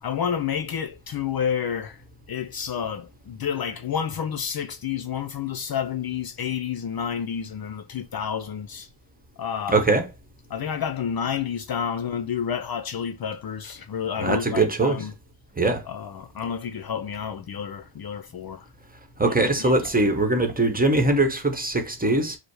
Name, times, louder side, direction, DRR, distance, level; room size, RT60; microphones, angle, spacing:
voice 1, 0.0-8.9 9.4-9.8 10.5-15.1 15.9-18.7 19.2-19.3 19.6-19.9, left 8 dB, 50° left, 0.5 m, -30 dB
voice 2, 9.7-10.0 14.2-15.0 15.6-15.8 19.2-22.4, right 2 dB, 20° right, 1.0 m, -21 dB
4.9 x 2.1 x 4.6 m
cardioid pair, 85°, 49 cm